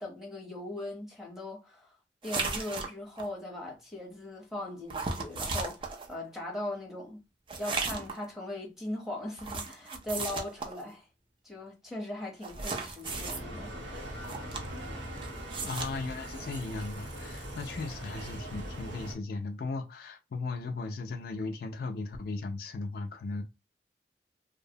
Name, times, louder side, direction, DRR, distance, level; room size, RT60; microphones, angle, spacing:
voice 1, 0.0-2.0 2.2-7.2 7.6-11.1 11.4-13.7, left 1 dB, ahead, 0.8 m, -39 dB
sound 1, 2.2-3.3 4.9-6.1 7.5-8.2 9.4-10.8 12.4-13.4 14.2-14.9 15.2-15.9, right 4 dB, 30° right, 0.4 m, -35 dB
Bicycle, 13.0-19.1, right 1 dB, 85° right, 0.9 m, -41 dB
voice 2, 15.6-23.4, left 3 dB, 60° left, 0.4 m, -37 dB
2.7 x 2.0 x 2.7 m
head